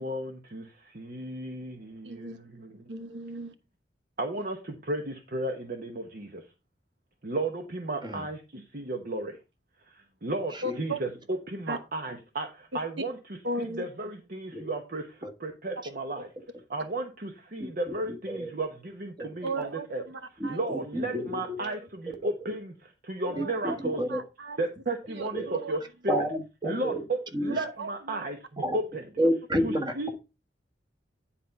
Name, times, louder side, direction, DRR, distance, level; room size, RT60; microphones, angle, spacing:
voice 1, 0.0-2.8 4.2-6.4 7.2-9.4 9.9-11.1 11.5-13.1 13.6-16.3 16.7-20.0 20.5-24.0 24.6-26.2 26.6-29.0 29.6-30.1, right 2 dB, 55° right, 1.0 m, -34 dB
voice 2, 2.0-2.4 2.9-3.5 10.6-11.0 11.7-11.8 13.4-13.9 19.4-20.6 21.1-21.2 21.6-21.8 23.3-24.6 25.1-25.8 27.4-28.3 29.2-29.3, right 2 dB, 90° right, 1.1 m, -37 dB
voice 3, 17.6-17.9 18.3-18.5 19.2-19.3 20.4-21.6 22.2-22.5 23.3-24.2 25.3-25.5 26.1-27.0 27.3-27.6 28.6-28.8 29.2-30.1, equal, 25° right, 1.5 m, -30 dB
10.0 x 4.3 x 5.3 m
head